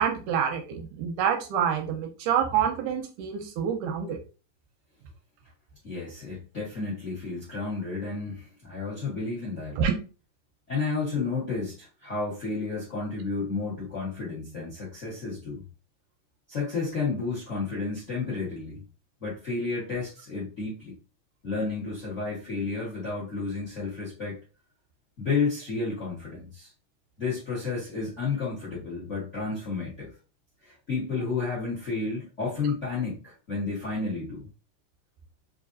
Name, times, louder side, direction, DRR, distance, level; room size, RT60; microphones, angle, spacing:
voice 1, 0.0-4.2 9.8-9.9, right 8 dB, 85° right, 4 dB, 2.2 m, -27 dB
voice 2, 5.8-9.8 10.7-15.6 16.5-18.8 19.2-20.9 21.4-24.4 25.2-26.7 27.2-30.1 30.6-34.5, left 4 dB, 70° left, -5 dB, 0.6 m, -31 dB
4.9 x 2.6 x 2.5 m, 0.33 s
omnidirectional pair, 3.4 m